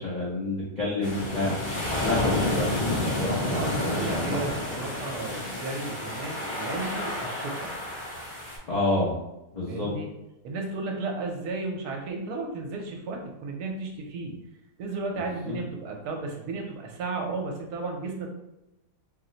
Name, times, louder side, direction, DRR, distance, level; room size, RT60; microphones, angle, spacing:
voice 1, 0.0-1.6 2.0-4.4 8.7-9.2 9.5-9.9 15.3-15.6, left 2 dB, 60° left, -6 dB, 0.4 m, -29 dB
sound 1, 1.0-8.6, left 1 dB, 40° left, 1.0 m, -30 dB
voice 2, 3.5-7.7 9.7-10.1 10.4-14.4 14.8-18.3, right 3 dB, 75° right, 1 dB, 1.1 m, -34 dB
2.9 x 2.0 x 3.7 m, 0.93 s
omnidirectional pair, 1.7 m